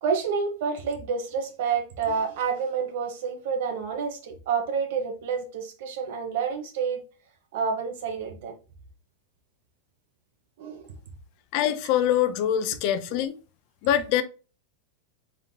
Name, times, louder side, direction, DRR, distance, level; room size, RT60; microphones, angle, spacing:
voice 1, 0.0-7.0 7.5-8.5 10.6-11.0 13.1-13.2, right 6 dB, 65° right, 1.1 m, -29 dB
voice 2, 11.5-13.3 13.8-14.2, left 10 dB, 55° left, 0.5 m, -24 dB
3.9 x 3.6 x 2.7 m
hypercardioid pair, 100°, 0 cm